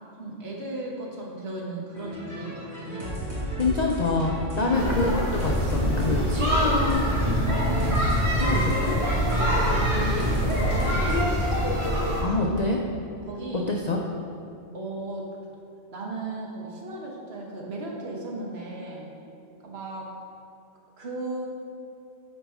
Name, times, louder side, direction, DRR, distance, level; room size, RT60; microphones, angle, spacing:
voice 1, 0.2-3.1 4.6-5.0 7.5-8.0 9.2-11.7 13.2-13.7 14.7-15.3 15.9-19.1 19.6-20.1 21.0-21.4, right 2 dB, 55° right, -2 dB, 1.3 m, -35 dB
sound 1, 1.9-11.7, right 1 dB, 15° right, 1.5 m, -32 dB
voice 2, 3.6-7.0 8.4-9.0 12.2-12.8 13.5-14.0, left 3 dB, 55° left, 0 dB, 0.4 m, -26 dB
sound 2, 4.7-12.2, equal, 40° right, 1.8 m, -25 dB
8.4 x 5.0 x 3.5 m, 2.6 s
omnidirectional pair, 1.3 m